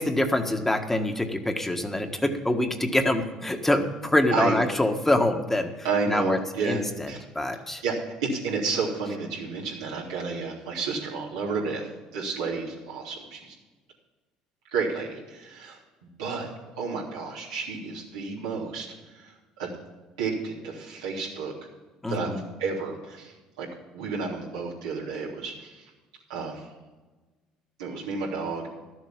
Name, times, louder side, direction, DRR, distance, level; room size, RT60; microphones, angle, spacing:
voice 1, 0.0-5.7 6.1-6.4 6.6-7.8 22.0-22.4, left 1 dB, 10° left, 5 dB, 1.5 m, -25 dB
voice 2, 5.8-7.2 7.8-13.5 14.7-15.8 16.2-16.5 16.8-19.7 20.2-21.5 22.1-22.3 22.6-23.7 23.9-25.9 26.3-26.7 27.8-28.7, right 4 dB, 90° right, -5 dB, 3.3 m, -31 dB
13.0 x 7.9 x 7.3 m, 1.3 s
hypercardioid pair, 65°, 3 cm